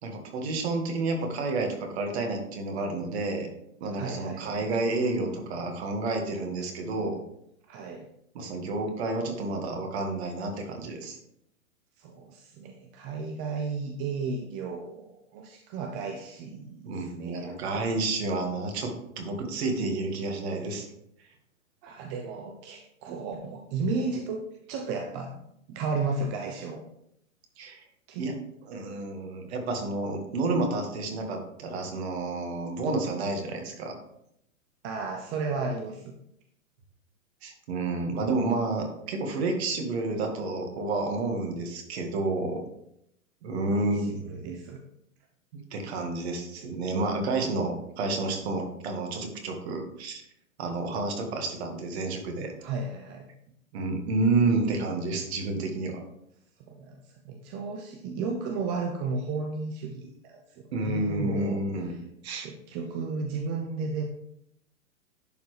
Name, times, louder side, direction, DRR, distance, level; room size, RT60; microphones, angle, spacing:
voice 1, 0.0-3.5 3.8-7.2 8.3-11.2 16.9-20.9 27.6-27.8 28.2-28.3 28.7-34.0 37.4-42.6 43.4-44.5 45.7-50.2 50.6-52.5 53.7-56.0 60.7-61.9 62.2-62.5, right 3 dB, 50° right, 3 dB, 1.9 m, -30 dB
voice 2, 3.9-4.7 7.7-8.1 12.0-18.0 21.8-24.4 24.7-25.4 25.7-26.8 28.1-28.3 34.8-36.2 43.7-44.8 52.6-53.3 56.7-61.6 62.3-64.0, right 4 dB, 25° right, 3 dB, 0.7 m, -34 dB
11.0 x 4.5 x 3.3 m, 0.76 s
hypercardioid pair, 115°, 40 cm